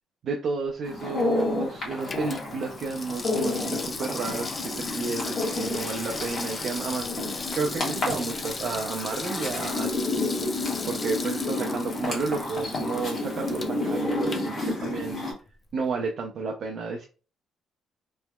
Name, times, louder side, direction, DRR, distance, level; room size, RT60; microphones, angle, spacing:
voice 1, 0.2-15.3 15.7-17.1, right 4 dB, 65° right, 1 dB, 0.5 m, -32 dB
sound 1, 0.8-15.3, left 2 dB, 50° left, 1.5 m, -30 dB
Water tap faucet / Sink (filling or washing), 0.9-15.2 15.5-15.6, left 3 dB, 30° left, 0.4 m, -38 dB
3.2 x 2.8 x 2.2 m, 0.34 s
cardioid pair, 90°, 0 cm